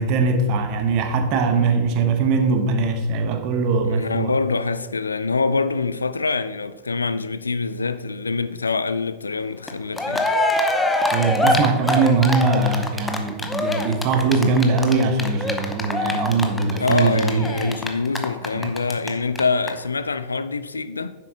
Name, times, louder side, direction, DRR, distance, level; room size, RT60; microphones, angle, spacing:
voice 1, 0.0-4.3 11.1-17.7 18.5-18.7, right 4 dB, 40° right, 1.0 m, -21 dB
voice 2, 3.9-10.3 16.8-21.1, left 4 dB, 75° left, 0.3 m, -25 dB
Cheering, 9.7-9.8 9.9-19.1 19.3-19.4 19.7-19.8, left 2 dB, 10° left, 0.9 m, -24 dB
9.9 x 7.7 x 2.9 m
figure-of-eight pair, 90°, 0 cm